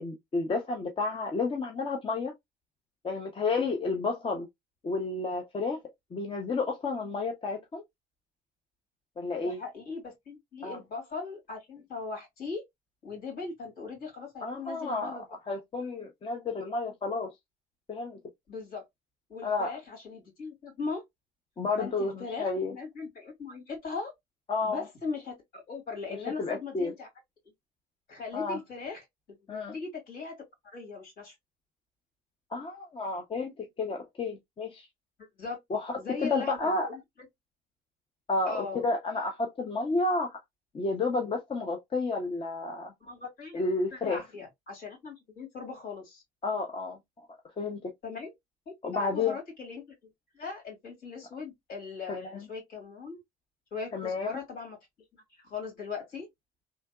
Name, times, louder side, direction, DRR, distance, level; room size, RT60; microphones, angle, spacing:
voice 1, 0.0-2.3 3.0-4.5 4.8-5.8 6.1-7.8 9.2-9.6 10.6-10.8 14.4-15.2 15.5-17.3 17.9-18.2 19.4-19.7 21.6-22.7 24.5-24.8 26.4-26.9 28.3-28.6 29.5-29.7 32.5-34.9 35.7-35.9 36.3-36.9 38.3-40.4 40.7-42.9 43.5-44.2 46.4-47.3 47.6-47.9 48.8-49.4 52.1-52.5 53.9-54.3, left 3 dB, 30° left, 0.7 m, -31 dB
voice 2, 9.4-12.6 13.0-15.3 18.5-18.9 19.3-21.0 21.8-24.1 24.6-27.1 28.1-29.0 29.5-30.3 30.7-31.3 35.4-35.6 36.0-37.0 38.5-38.9 43.0-43.6 43.9-46.2 48.0-48.3 48.8-53.2 53.7-54.8 55.4-56.3, left 4 dB, 65° left, 2.6 m, -39 dB
3.4 x 2.8 x 2.3 m
cardioid pair, 110°, 17 cm